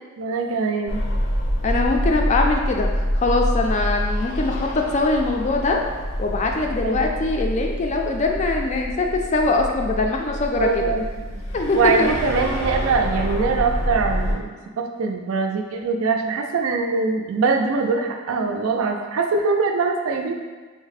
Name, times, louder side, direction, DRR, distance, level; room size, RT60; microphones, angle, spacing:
voice 1, 0.2-1.0 6.8-7.1 10.6-11.4 11.7-14.5 14.8-20.3, right 4 dB, 80° right, 3 dB, 0.4 m, -22 dB
sound 1, 0.9-14.3, equal, 70° left, 0.6 m, -26 dB
voice 2, 1.6-5.8 6.2-10.9 11.5-12.1, left 3 dB, 35° left, 2 dB, 0.3 m, -22 dB
3.4 x 2.1 x 4.0 m, 1.4 s
head